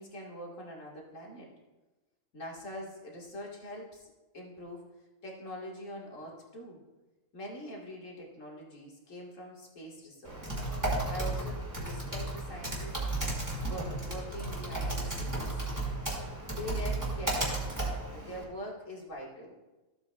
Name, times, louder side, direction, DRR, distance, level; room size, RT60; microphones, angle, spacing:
voice 1, 0.0-1.5 2.3-4.8 5.2-6.8 7.3-10.6 11.1-13.0 13.6-15.5 16.5-19.5, equal, 70° left, -2 dB, 2.2 m, -43 dB
Typing, 10.2-18.4, right 2 dB, 15° right, 2.0 m, -34 dB
14.5 x 7.9 x 2.3 m, 1.1 s
omnidirectional pair, 1.4 m